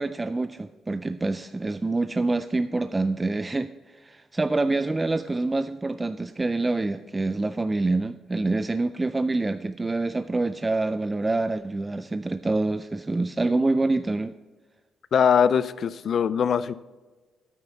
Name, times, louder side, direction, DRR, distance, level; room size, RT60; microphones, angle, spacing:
voice 1, 0.0-14.3, right 2 dB, 20° right, 11 dB, 0.4 m, -26 dB
voice 2, 15.1-16.7, left 7 dB, 55° left, 16 dB, 0.4 m, -21 dB
9.3 x 9.0 x 4.0 m, 1.3 s
cardioid pair, 90°, 0 cm